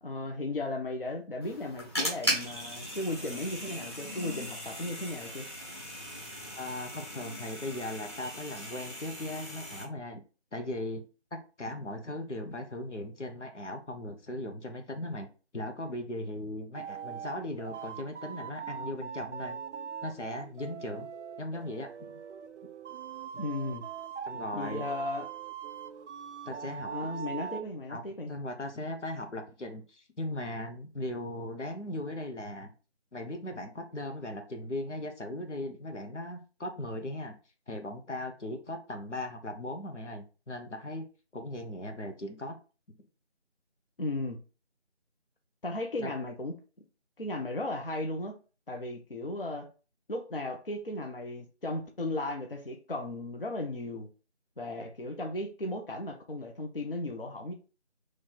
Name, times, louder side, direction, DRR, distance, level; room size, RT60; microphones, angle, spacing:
voice 1, 0.0-5.5 23.4-23.8 24.5-25.3 26.9-28.3 44.0-44.4 45.6-46.6 47.2-48.4 48.7-49.7 50.1-54.1 54.6-57.5, left 2 dB, 55° left, 0.7 m, -35 dB
sound 1, 1.4-9.8, equal, 20° left, 1.2 m, -38 dB
voice 2, 6.6-10.2 10.5-11.0 11.3-15.3 15.5-19.6 20.0-21.1 21.4-22.2 24.2-24.8 26.4-26.9 27.9-28.0 28.3-32.7 33.1-37.4 37.7-41.1 41.3-42.6 46.0-46.1, left 1 dB, 90° left, 1.0 m, -38 dB
sound 2, 16.7-27.6, right 8 dB, 85° right, 0.5 m, -41 dB
3.1 x 3.1 x 4.2 m
figure-of-eight pair, 175°, 35 cm